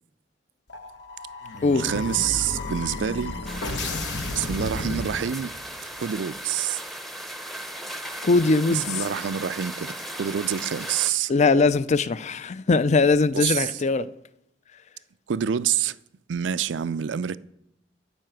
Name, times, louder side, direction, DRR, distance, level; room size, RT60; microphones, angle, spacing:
sound 1, 0.7-5.7, left 2 dB, 70° left, 1.1 m, -33 dB
voice 1, 1.8-3.3 4.4-5.5 6.0-6.8 8.7-11.3 13.3-13.7 15.3-16.0 16.3-17.4, right 9 dB, 75° right, 0.4 m, -27 dB
sound 2, 3.5-11.1, right 1 dB, ahead, 0.8 m, -37 dB
voice 2, 8.2-8.9 11.3-14.1, left 3 dB, 40° left, 0.4 m, -20 dB
12.5 x 5.6 x 8.9 m
head